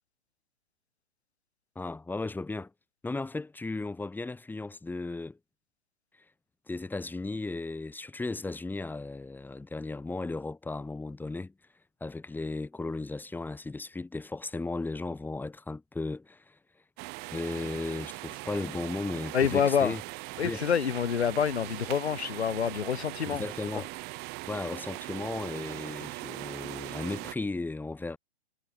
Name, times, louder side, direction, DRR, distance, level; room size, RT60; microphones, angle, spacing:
voice 1, 1.8-2.7 3.0-5.4 6.7-11.5 12.0-16.6 17.3-20.0 20.4-20.7 23.3-23.9 24.5-28.2, left 3 dB, 5° left, 5.7 m, -35 dB
sound 1, 17.0-27.3, right 25 dB, 30° right, 3.0 m, -40 dB
voice 2, 19.3-20.0 20.4-23.4 23.7-23.8, left 7 dB, 80° left, 1.0 m, -27 dB
figure-of-eight pair, 120°, 33 cm